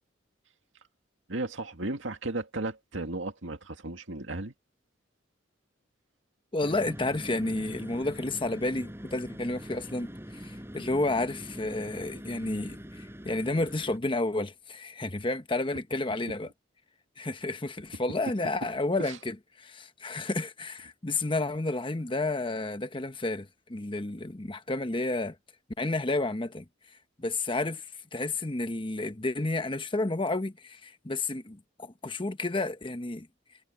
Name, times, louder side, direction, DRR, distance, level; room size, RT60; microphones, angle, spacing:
voice 1, 1.3-4.5 19.1-19.2, right 2 dB, 75° right, 2.2 m, -35 dB
voice 2, 6.5-16.5 17.2-25.4 25.8-26.6 27.2-27.9 28.1-33.3, left 2 dB, 25° left, 1.0 m, -31 dB
sound 1, 6.6-14.0, equal, 15° right, 5.3 m, -43 dB
head